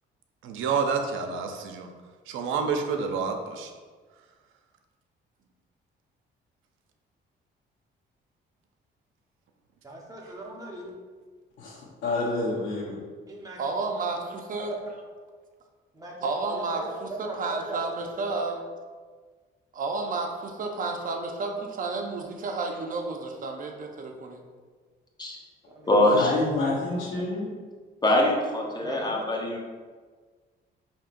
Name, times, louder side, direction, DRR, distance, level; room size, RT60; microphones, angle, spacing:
voice 1, 0.4-1.9 2.3-3.7, right 5 dB, 85° right, 5 dB, 0.5 m, -28 dB
voice 2, 9.8-10.9 13.3-14.3 15.9-18.1 25.6-26.2 28.8-29.2, right 2 dB, 15° right, -2 dB, 0.9 m, -39 dB
voice 3, 11.6-12.9 26.1-27.5, left 2 dB, 75° left, -8 dB, 0.9 m, -28 dB
voice 4, 13.6-14.7 16.2-18.6 19.7-24.4, right 3 dB, 45° right, 3 dB, 0.7 m, -31 dB
voice 5, 25.9-26.3 28.0-29.6, left 1 dB, 20° left, 0 dB, 0.8 m, -23 dB
5.3 x 2.8 x 2.5 m, 1.5 s
cardioid pair, 90°, 20 cm